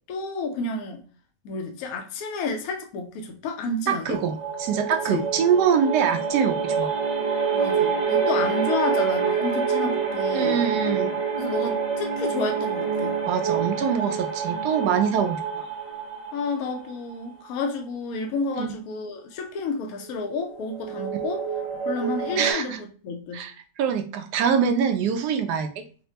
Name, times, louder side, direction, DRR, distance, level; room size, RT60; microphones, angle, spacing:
voice 1, 0.1-1.0 1.4-4.1 5.1-5.2 7.5-10.6 11.4-13.2 16.3-21.4 21.9-23.4, left 3 dB, 70° left, 1.0 m, -30 dB
voice 2, 3.9-6.9 10.3-11.2 13.2-15.4 18.6-18.7 22.4-22.8 23.3-25.7, right 7 dB, 85° right, 1.2 m, -24 dB
sound 1, 4.1-17.3 20.0-22.5, right 6 dB, 55° right, 0.3 m, -27 dB
4.1 x 2.1 x 2.7 m
omnidirectional pair, 1.7 m